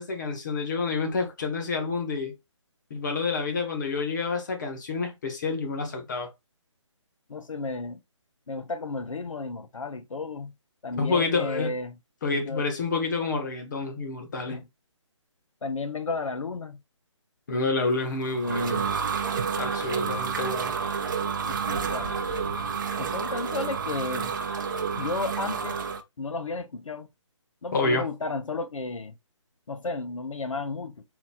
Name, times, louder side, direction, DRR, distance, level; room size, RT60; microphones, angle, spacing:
voice 1, 0.0-2.3 2.9-6.3 10.9-11.8 12.2-14.6 17.5-18.9 19.6-20.7 27.7-28.0, left 3 dB, 35° left, 1.2 m, -28 dB
voice 2, 7.3-8.0 8.5-10.5 10.8-12.0 12.3-12.6 14.5-14.7 15.6-16.8 21.5-22.2 23.0-24.3 25.0-25.8 26.2-27.1 27.6-29.1 29.7-31.0, left 3 dB, 85° left, 0.8 m, -33 dB
sound 1, 18.0-26.0, right 6 dB, 40° right, 0.6 m, -30 dB
4.1 x 2.4 x 4.2 m
hypercardioid pair, 165°, 16 cm